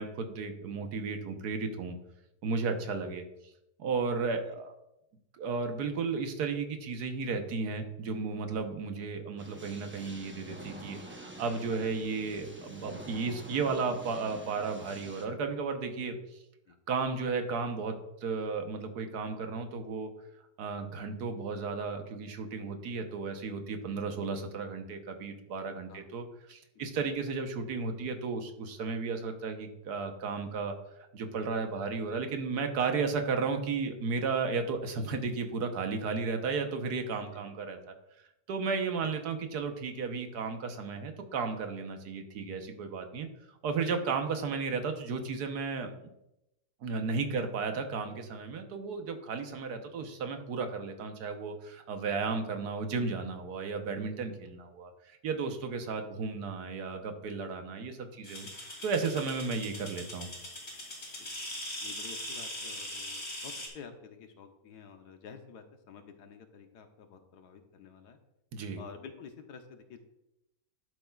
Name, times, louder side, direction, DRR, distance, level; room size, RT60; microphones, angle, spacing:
voice 1, 0.0-2.0 2.4-3.2 3.8-4.7 5.4-16.4 16.9-20.1 20.6-30.7 31.1-37.9 38.5-43.3 43.6-45.9 46.8-58.5 58.8-60.3 68.5-68.8, right 4 dB, 80° right, 6 dB, 1.5 m, -34 dB
sound 1, 9.4-15.3, right 1 dB, 15° right, 0.4 m, -47 dB
sound 2, 58.2-63.7, left 1 dB, 45° left, 3.1 m, -41 dB
voice 2, 61.8-68.2 68.8-70.0, left 6 dB, 85° left, 6 dB, 1.5 m, -50 dB
12.0 x 7.8 x 2.4 m, 0.87 s
omnidirectional pair, 1.7 m